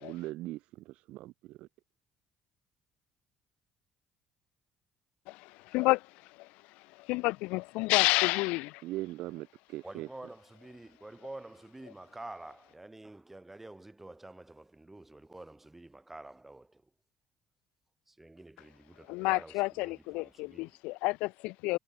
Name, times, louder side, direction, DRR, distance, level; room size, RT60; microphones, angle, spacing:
voice 1, 0.0-1.7 8.8-10.1, right 17 dB, 80° right, 1.1 m, -40 dB
voice 2, 7.1-8.8 19.1-21.8, left 24 dB, 90° left, 0.4 m, -29 dB
voice 3, 9.8-16.8 18.1-20.8, right 2 dB, 10° right, 4.2 m, -48 dB
cardioid pair, 95°, 2 cm